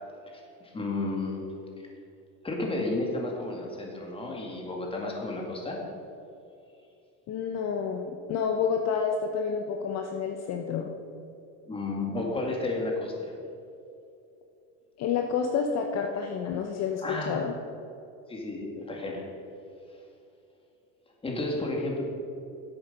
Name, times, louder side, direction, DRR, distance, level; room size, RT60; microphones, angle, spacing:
voice 1, 0.3-1.5 2.4-5.8 11.7-13.3 17.0-17.4 18.3-19.2 21.2-22.0, left 2 dB, 15° left, -1 dB, 2.1 m, -32 dB
voice 2, 7.3-10.9 15.0-17.5, left 6 dB, 50° left, 3 dB, 0.8 m, -29 dB
9.9 x 8.0 x 5.3 m, 2.6 s
supercardioid pair, 120°, 34 cm